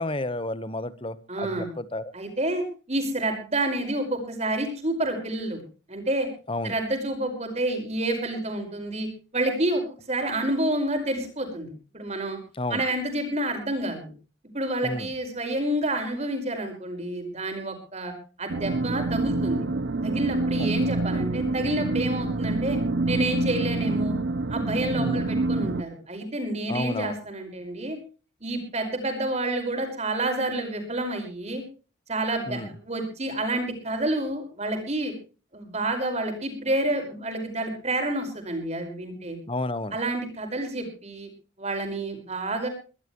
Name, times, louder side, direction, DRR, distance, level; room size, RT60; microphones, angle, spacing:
voice 1, 0.0-2.1 6.5-6.7 12.5-12.8 14.8-15.1 20.6-20.7 21.1-21.2 25.0-25.2 26.7-27.1 32.5-32.7 39.5-40.0, left 2 dB, 25° left, 15 dB, 1.1 m, -31 dB
voice 2, 1.3-1.7 2.1-5.6 5.9-6.3 6.6-9.8 10.1-12.4 12.7-14.1 14.5-18.1 18.4-19.6 20.0-22.8 23.1-24.1 24.5-28.0 28.4-31.6 32.1-35.1 35.5-39.4 39.9-41.3 41.6-42.7, right 1 dB, 35° right, 5 dB, 5.1 m, -29 dB
sound 1, 18.5-25.8, right 2 dB, 65° right, 0.7 m, -26 dB
23.0 x 13.5 x 3.1 m, 0.35 s
head